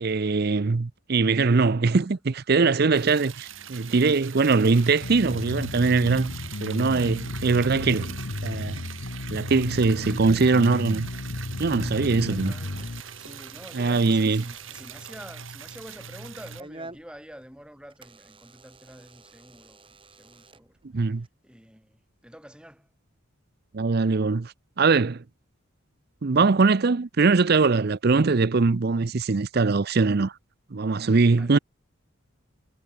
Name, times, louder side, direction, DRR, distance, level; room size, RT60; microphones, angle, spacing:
voice 1, 0.0-6.3 6.6-8.1 8.4-8.8 9.3-11.1 11.6-12.5 13.7-14.4 20.9-21.3 23.7-25.2 26.2-30.3 30.7-31.6, right 4 dB, 50° right, 0.6 m, -22 dB
Liquid, 2.9-16.6, right 8 dB, 70° right, 6.5 m, -42 dB
sound 1, 5.0-13.0, left 2 dB, 65° left, 1.2 m, -34 dB
Door / Alarm, 12.0-21.3, right 2 dB, 25° right, 4.6 m, -51 dB
voice 2, 12.1-20.8 21.0-21.1 21.4-22.9 31.3-31.6, equal, 5° right, 5.2 m, -47 dB
head